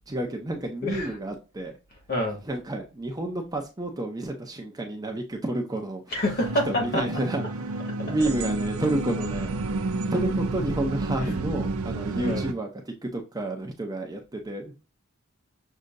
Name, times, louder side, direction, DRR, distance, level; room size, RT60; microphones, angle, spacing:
voice 1, 0.1-1.8 2.5-6.0 6.7-9.6 10.1-14.7, right 1 dB, 15° right, 0.6 m, -30 dB
voice 2, 0.8-1.1 1.9-2.4 6.1-7.0 8.2-8.3 11.2-11.3 12.2-12.4, left 1 dB, 45° left, 1.7 m, -27 dB
sound 1, 6.4-12.5, right 2 dB, 70° right, 0.5 m, -30 dB
6.4 x 2.8 x 2.5 m
head